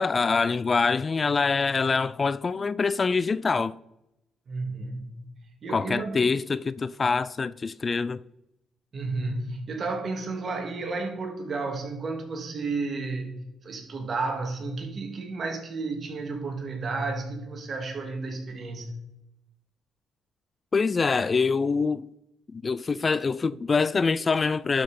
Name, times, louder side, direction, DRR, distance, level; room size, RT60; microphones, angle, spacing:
voice 1, 0.0-3.7 5.7-8.2 20.7-22.1 22.5-24.8, left 4 dB, 35° left, 0.3 m, -25 dB
voice 2, 4.5-5.2 5.6-6.2 8.9-13.3 13.6-18.9, right 3 dB, 45° right, 2.8 m, -32 dB
12.0 x 5.8 x 5.4 m
cardioid pair, 90°, 0 cm